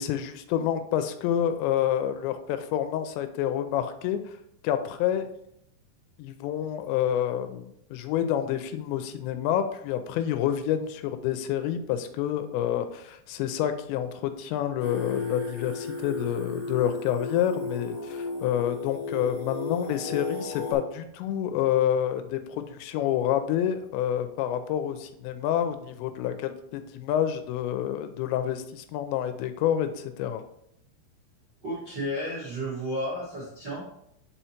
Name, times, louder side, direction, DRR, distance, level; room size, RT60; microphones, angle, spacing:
voice 1, 0.0-4.2 4.6-5.3 6.2-30.4, left 10 dB, 85° left, 9 dB, 2.7 m, -28 dB
Singing, 14.8-20.7, left 3 dB, 20° left, 2.0 m, -34 dB
voice 2, 31.6-33.8, equal, 50° right, -7 dB, 1.2 m, -32 dB
5.6 x 5.2 x 4.3 m, 0.76 s
omnidirectional pair, 5.2 m